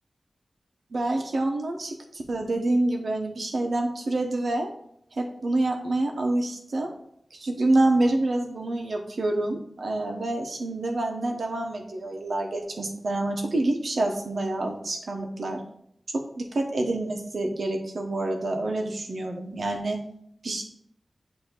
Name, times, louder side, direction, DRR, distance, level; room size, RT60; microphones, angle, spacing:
voice 1, 0.9-4.7 5.2-6.9 7.3-15.6 16.1-20.0 20.4-20.6, right 2 dB, 80° right, 2 dB, 1.0 m, -27 dB
8.0 x 2.9 x 4.5 m, 0.70 s
wide cardioid pair, 60°, 0 cm